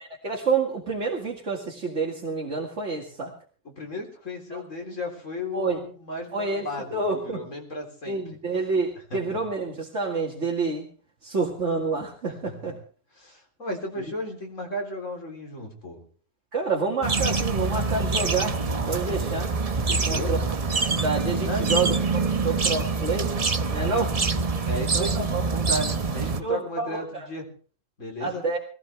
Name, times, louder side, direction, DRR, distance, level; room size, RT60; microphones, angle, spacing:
voice 1, 0.0-3.3 4.5-4.6 5.5-5.8 6.3-7.4 8.1-10.9 11.2-12.8 16.5-18.6 18.9-19.5 20.1-20.4 20.8-23.3 23.7-24.1 24.9-25.5 26.4-27.3 28.2-28.6, right 4 dB, 70° right, -1 dB, 2.4 m, -28 dB
voice 2, 3.6-8.4 13.1-16.0 19.8-20.3 21.4-21.9 23.8-24.1 24.7-27.5 28.0-28.4, left 1 dB, 85° left, 1 dB, 4.1 m, -34 dB
sound 1, 17.0-26.4, right 4 dB, 35° right, 0.9 m, -25 dB
20.5 x 16.5 x 3.4 m, 0.41 s
omnidirectional pair, 1.3 m